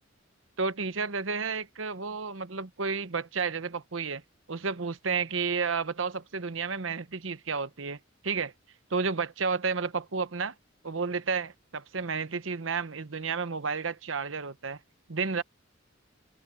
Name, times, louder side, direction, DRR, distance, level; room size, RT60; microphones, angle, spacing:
voice 1, 0.6-4.2 4.5-8.0 8.2-8.5 8.9-10.5 10.8-14.8 15.1-15.4, right 5 dB, 70° right, 1.0 m, -31 dB
open air
head